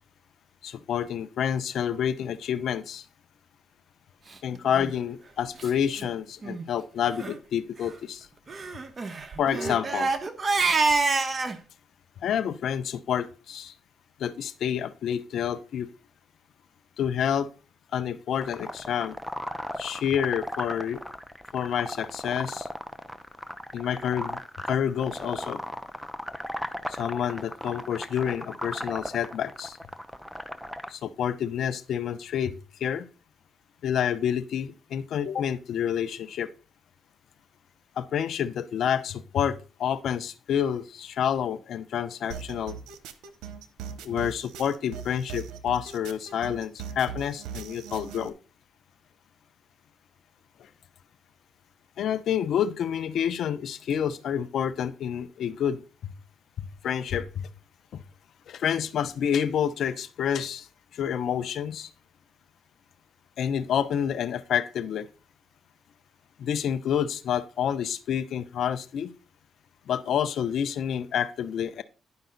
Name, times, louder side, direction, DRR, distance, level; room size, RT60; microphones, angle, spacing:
voice 1, 0.6-3.0 4.4-8.3 9.4-10.1 12.2-13.7 14.2-15.9 17.0-17.5 17.9-19.2 19.8-21.0 21.5-22.7 23.7-24.4 24.7-25.6 26.9-29.8 30.9-33.1 33.8-36.5 38.0-42.8 44.0-48.3 52.0-56.1 56.6-57.5 58.5-60.7 60.9-61.9 63.4-65.1 66.4-69.1 69.9-71.8, left 9 dB, 65° left, 12 dB, 0.7 m, -28 dB
Crying sobbing, 4.7-4.9 5.6-5.7 6.0-6.1 6.4-6.6 7.1-7.3 8.5-11.6, right 3 dB, 35° right, 1.1 m, -27 dB
sound 1, 18.4-30.9, equal, ahead, 0.8 m, -36 dB
sound 2, 42.3-48.3, right 7 dB, 90° right, 0.9 m, -40 dB
10.5 x 5.3 x 3.9 m, 0.36 s
cardioid pair, 90°, 0 cm